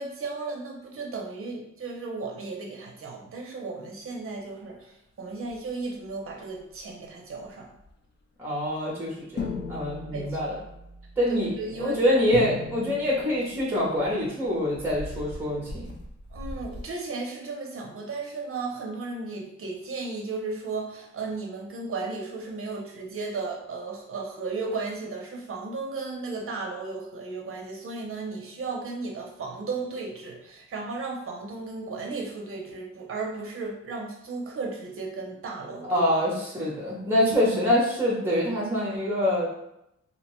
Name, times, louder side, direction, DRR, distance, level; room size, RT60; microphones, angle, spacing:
voice 1, 0.0-7.7 10.1-10.4 11.6-12.2 12.8-12.9 16.3-36.0, right 3 dB, 50° right, 0 dB, 0.6 m, -35 dB
sound 1, 5.5-5.7 6.0-6.3 6.6-6.8 7.4-7.5 7.7-7.9 8.7-8.8 9.4-16.8, left 3 dB, 40° left, 0.4 m, -38 dB
voice 2, 8.4-10.6 11.2-11.5 11.8-15.9 35.8-39.5, equal, 10° right, -5 dB, 0.7 m, -25 dB
2.7 x 2.1 x 2.9 m, 0.80 s
wide cardioid pair, 155°, 29 cm